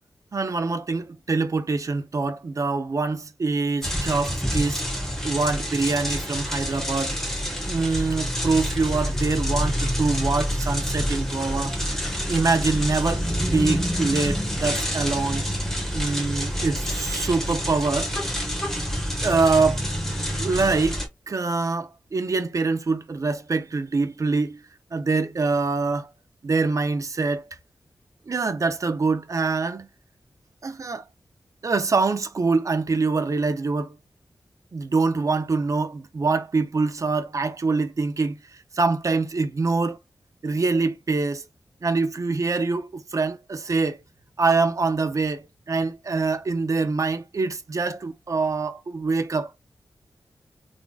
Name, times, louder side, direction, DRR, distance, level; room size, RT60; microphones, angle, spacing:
voice 1, 0.3-4.8 5.2-7.2 7.7-11.8 12.3-15.4 15.9-18.1 19.2-19.8 20.4-21.0 21.3-24.6 24.9-26.1 26.4-27.5 28.3-29.9 30.6-31.0 31.6-33.9 34.7-40.0 40.4-41.5 41.8-44.0 44.4-49.5, right 3 dB, 50° right, 0.7 m, -24 dB
sound 1, 3.8-21.1, equal, 5° left, 1.5 m, -27 dB
3.7 x 3.6 x 2.3 m
wide cardioid pair, 100°, 7 cm